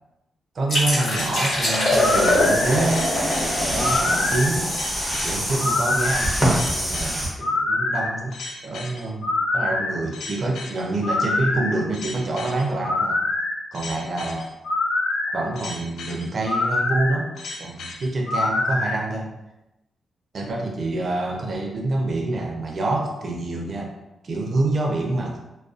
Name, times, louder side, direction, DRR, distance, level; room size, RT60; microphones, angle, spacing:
voice 1, 0.5-4.7 5.2-8.4 8.6-13.2 13.7-14.5 15.3-17.3 17.6-19.3 20.3-23.9 24.2-25.4, right 2 dB, 50° right, 0 dB, 0.5 m, -26 dB
sound 1, 0.7-6.2, left 1 dB, 70° left, 1.2 m, -24 dB
sound 2, 1.1-19.0, left 2 dB, 90° left, 0.3 m, -26 dB
sound 3, 1.9-7.3, equal, ahead, 0.8 m, -26 dB
2.4 x 2.2 x 2.4 m, 0.94 s
cardioid pair, 100°, 0 cm